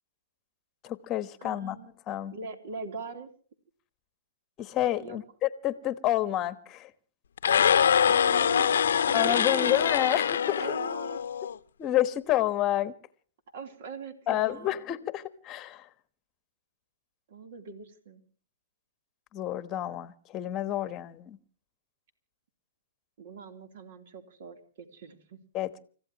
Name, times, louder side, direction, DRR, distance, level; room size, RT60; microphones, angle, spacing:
voice 1, 0.8-2.3 4.6-6.9 9.1-10.6 11.8-12.9 14.3-15.8 19.3-21.4 25.5-25.8, left 13 dB, 25° left, 1.2 m, -29 dB
voice 2, 1.4-1.9 2.3-3.3 5.0-5.2 8.0-10.0 10.6-11.2 13.5-14.8 17.3-18.2 23.2-25.4, right 5 dB, 60° right, 3.4 m, -41 dB
sound 1, 7.4-11.5, left 8 dB, 80° left, 0.8 m, -24 dB
30.0 x 15.0 x 3.0 m
hypercardioid pair, 150°, 0 cm